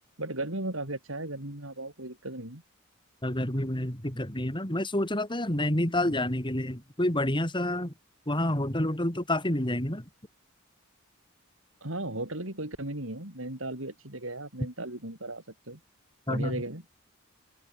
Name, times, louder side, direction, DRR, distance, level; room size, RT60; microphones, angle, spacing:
voice 1, 0.2-2.6 6.1-6.2 11.8-15.8 16.3-16.8, right 1 dB, 65° right, 5.8 m, -36 dB
voice 2, 3.2-7.9 8.3-10.0 16.3-16.6, left 1 dB, 25° left, 4.0 m, -28 dB
head